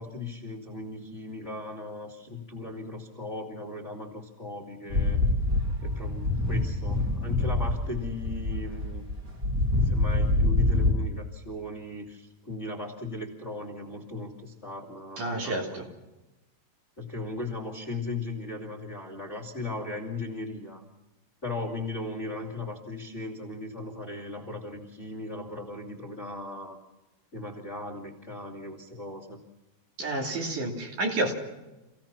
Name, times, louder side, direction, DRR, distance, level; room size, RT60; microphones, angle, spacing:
voice 1, 0.0-5.2 5.8-9.0 9.8-15.8 17.0-20.8 21.4-26.8 27.3-29.4, left 2 dB, 20° left, -2 dB, 2.4 m, -37 dB
sound 1, 4.9-10.9, left 2 dB, 25° right, 2.8 m, -26 dB
voice 2, 15.2-15.9 30.0-31.3, right 2 dB, 60° right, 1 dB, 4.3 m, -30 dB
27.5 x 17.0 x 5.9 m, 1.0 s
omnidirectional pair, 4.2 m